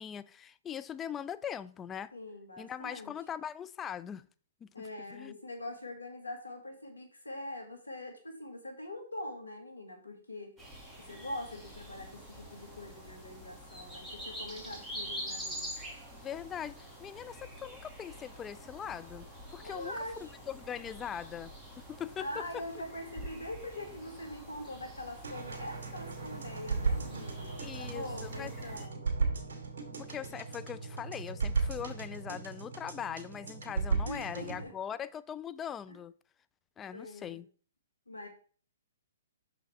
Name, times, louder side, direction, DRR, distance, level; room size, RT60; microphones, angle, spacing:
voice 1, 0.0-2.1 2.6-4.2 4.6-4.7 5.1-5.4 16.1-19.9 20.5-22.6 27.6-28.5 29.9-36.1 36.8-37.5, left 9 dB, 15° left, 0.4 m, -41 dB
voice 2, 2.1-3.1 4.7-10.5 11.1-15.7 19.6-20.3 22.2-29.0 34.1-34.7 35.9-36.0 36.9-37.4 38.1-38.3, left 1 dB, 90° left, 2.0 m, -43 dB
sound 1, 10.6-28.9, equal, 5° right, 2.0 m, -46 dB
sound 2, 25.2-34.6, right 4 dB, 65° right, 2.2 m, -35 dB
6.1 x 5.6 x 4.3 m
figure-of-eight pair, 125°, 0 cm